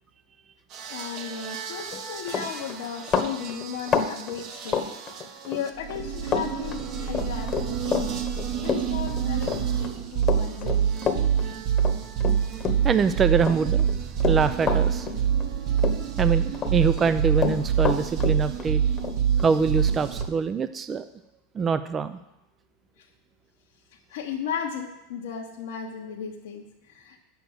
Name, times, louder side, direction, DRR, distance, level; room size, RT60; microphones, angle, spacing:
sound 1, 0.7-20.2, right 8 dB, 50° right, 1.3 m, -27 dB
voice 1, 0.9-4.8 5.2-8.2 8.6-10.8 23.0-23.1 24.1-27.2, left 7 dB, 75° left, -2 dB, 1.1 m, -35 dB
Run, 1.8-2.0 2.3-5.6 5.9-6.5 6.7-13.1 13.4-15.5 15.8-16.7 17.0-20.3, left 6 dB, 30° left, 1.2 m, -28 dB
voice 2, 12.8-13.9 14.2-15.1 16.2-18.8 19.4-21.1 21.5-22.2, right 5 dB, 25° right, 11 dB, 0.5 m, -24 dB
8.9 x 7.0 x 7.8 m, 0.92 s
hypercardioid pair, 115°, 0 cm